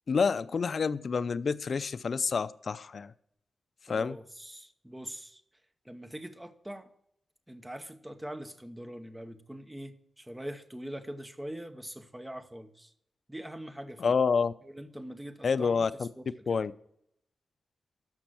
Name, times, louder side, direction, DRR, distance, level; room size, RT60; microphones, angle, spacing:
voice 1, 0.1-3.1 3.9-4.2 14.0-14.5 15.4-16.1 16.5-16.7, left 5 dB, 50° left, 13 dB, 0.5 m, -28 dB
voice 2, 3.9-5.4 5.8-6.9 7.5-12.9 13.3-14.2 14.6-15.9 16.2-16.6, right 1 dB, 10° right, 8 dB, 0.9 m, -43 dB
13.0 x 5.3 x 7.5 m, 0.73 s
wide cardioid pair, 145°, 0 cm